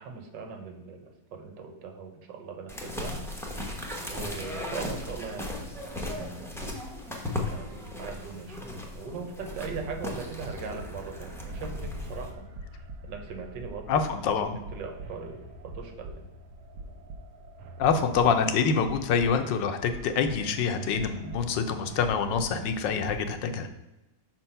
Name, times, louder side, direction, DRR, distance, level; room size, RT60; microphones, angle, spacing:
voice 1, 0.0-3.2 4.0-6.6 7.5-14.1 14.4-14.5 14.7-16.3, right 5 dB, 90° right, 4 dB, 1.7 m, -40 dB
sound 1, 2.7-12.3, left 1 dB, 5° left, 0.5 m, -37 dB
sound 2, 9.5-23.4, right 1 dB, 70° right, 1.2 m, -44 dB
voice 2, 13.9-14.6 17.8-23.7, left 6 dB, 85° left, 7 dB, 1.4 m, -26 dB
6.0 x 4.5 x 5.5 m, 0.98 s
omnidirectional pair, 1.9 m